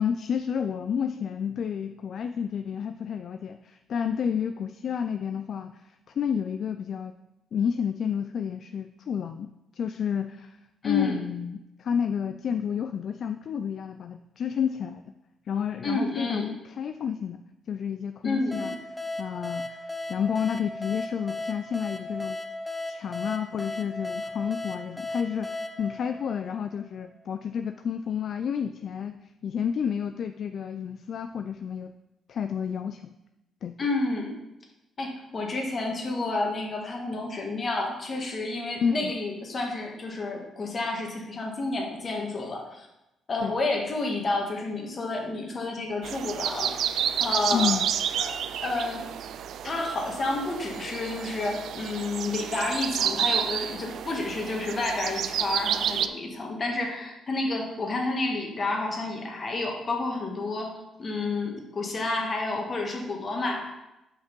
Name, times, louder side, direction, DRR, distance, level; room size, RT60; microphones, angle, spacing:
voice 1, 0.0-7.2 7.5-9.5 9.7-10.6 10.8-15.0 15.5-17.4 17.7-18.7 19.2-22.4 22.9-31.9 32.3-33.1 33.6-33.7 38.8-39.1 43.4-43.6 47.5-47.9, left 7 dB, 60° left, 8 dB, 0.3 m, -30 dB
voice 2, 10.8-11.2 15.8-16.5 18.2-18.7 33.8-34.4 35.0-42.9 43.3-46.7 47.2-47.8 48.2-48.4 48.6-49.1 49.6-63.7, left 2 dB, 40° left, 1 dB, 1.6 m, -30 dB
sound 1, 18.5-27.0, left 2 dB, 10° left, 0.8 m, -36 dB
sound 2, 46.0-56.1, right 9 dB, 70° right, 0.4 m, -30 dB
5.9 x 5.3 x 5.3 m, 0.93 s
cardioid pair, 90°, 0 cm